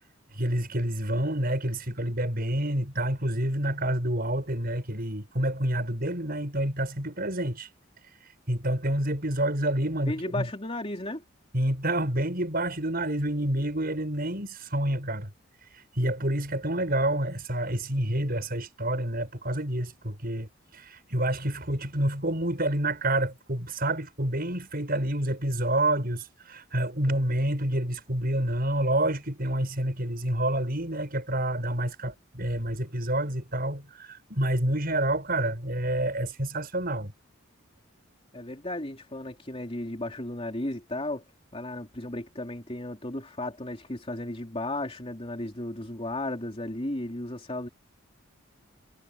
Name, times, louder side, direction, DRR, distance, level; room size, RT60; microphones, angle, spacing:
voice 1, 0.3-7.7 8.5-10.5 11.5-15.3 16.0-37.1, right 1 dB, 45° right, 7.0 m, -28 dB
voice 2, 10.1-11.2 38.3-41.2 41.5-47.7, left 1 dB, 25° left, 3.2 m, -34 dB
head